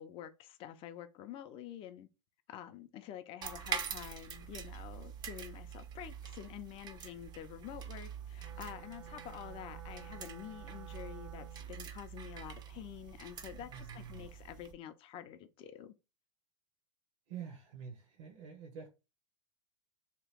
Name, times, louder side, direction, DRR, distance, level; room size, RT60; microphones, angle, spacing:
voice 1, 0.0-2.1 2.5-15.9, left 11 dB, 35° left, 0.4 m, -48 dB
sound 1, 3.4-14.7, right 7 dB, 25° right, 0.5 m, -45 dB
Wind instrument woodwind instrument, 8.4-11.8, right 8 dB, 80° right, 0.4 m, -53 dB
voice 2, 13.7-14.3 17.3-18.9, right 7 dB, 65° right, 0.9 m, -47 dB
2.9 x 2.2 x 3.4 m
hypercardioid pair, 105°, 15 cm